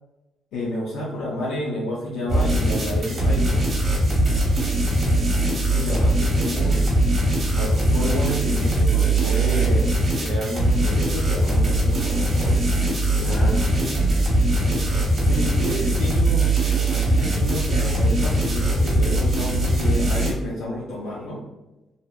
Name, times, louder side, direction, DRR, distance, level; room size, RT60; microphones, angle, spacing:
voice 1, 0.5-3.6 5.6-7.0 7.4-9.9 10.2-12.7 13.2-13.6 14.9-15.0 15.3-16.6 16.9-21.4, left 1 dB, 85° left, -5 dB, 0.4 m, -30 dB
sound 1, 2.3-20.3, right 1 dB, 45° right, 0.8 m, -21 dB
voice 2, 4.1-5.8 13.2-16.0, equal, 60° left, -6 dB, 1.0 m, -39 dB
2.7 x 2.0 x 2.2 m, 1.0 s
cardioid pair, 90°, 0 cm